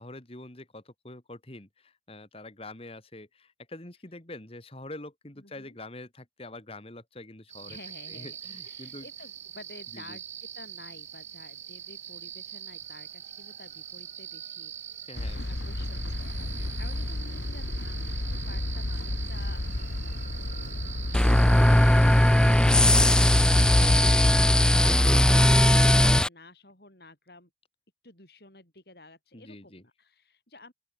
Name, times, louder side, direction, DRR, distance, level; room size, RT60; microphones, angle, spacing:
voice 1, 0.0-7.8 8.1-9.1 9.9-10.2 15.1-15.5 16.5-16.7 21.1-21.3 29.3-29.8, left 2 dB, 35° left, 2.5 m, -45 dB
voice 2, 5.4-5.8 7.6-8.4 8.6-15.0 15.4-19.6 20.0-20.3 21.1-27.5 28.0-30.7, left 2 dB, 60° left, 7.5 m, -51 dB
sound 1, 7.5-24.3, right 10 dB, 40° right, 2.7 m, -43 dB
sound 2, 15.2-24.5, left 1 dB, 85° left, 1.3 m, -32 dB
sound 3, 21.1-26.3, left 1 dB, 5° left, 0.3 m, -19 dB
open air
head